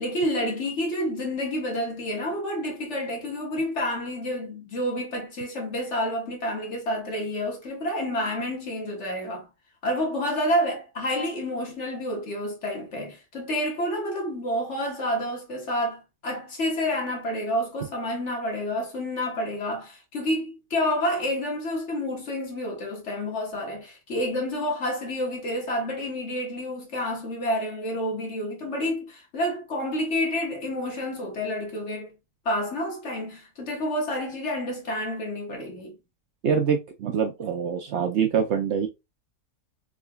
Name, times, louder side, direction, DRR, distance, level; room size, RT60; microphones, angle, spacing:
voice 1, 0.0-9.5 9.8-32.1 32.4-36.0, left 1 dB, 55° left, 1.5 m, -29 dB
voice 2, 36.4-38.9, right 7 dB, 65° right, 0.7 m, -25 dB
3.8 x 3.1 x 2.3 m
omnidirectional pair, 1.5 m